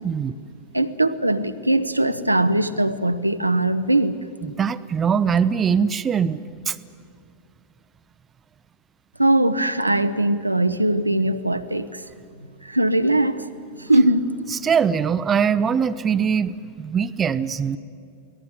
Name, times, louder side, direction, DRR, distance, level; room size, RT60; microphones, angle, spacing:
voice 1, 0.7-4.2 9.2-12.0 12.6-13.4 13.8-14.3, right 1 dB, 85° right, 0.9 m, -20 dB
voice 2, 4.6-6.8 14.5-17.8, right 7 dB, 20° right, 0.7 m, -22 dB
22.5 x 18.5 x 9.7 m
figure-of-eight pair, 90°, 0 cm